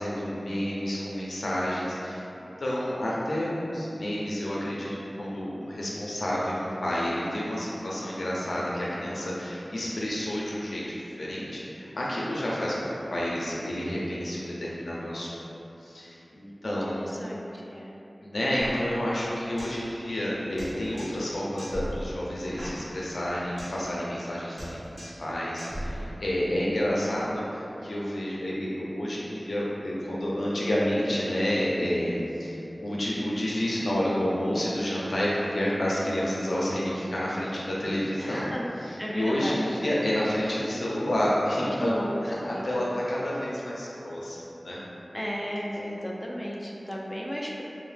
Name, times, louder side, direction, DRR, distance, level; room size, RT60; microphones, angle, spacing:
voice 1, 0.0-12.7 13.1-15.4 15.8-17.0 18.2-38.5 38.8-44.8, equal, 90° left, -6 dB, 0.5 m, -29 dB
voice 2, 16.6-17.9 31.7-31.8 38.2-38.7 39.0-39.7 41.6-42.2 42.5-42.9 45.1-47.6, equal, 20° left, -3 dB, 0.3 m, -34 dB
sound 1, 18.6-19.9 20.1-20.2 20.6-21.3 21.6-23.9 24.1-24.3 24.6-25.3 25.6-26.6, equal, 30° right, 0.8 m, -39 dB
2.7 x 2.1 x 3.2 m, 2.9 s
wide cardioid pair, 50°, 0 cm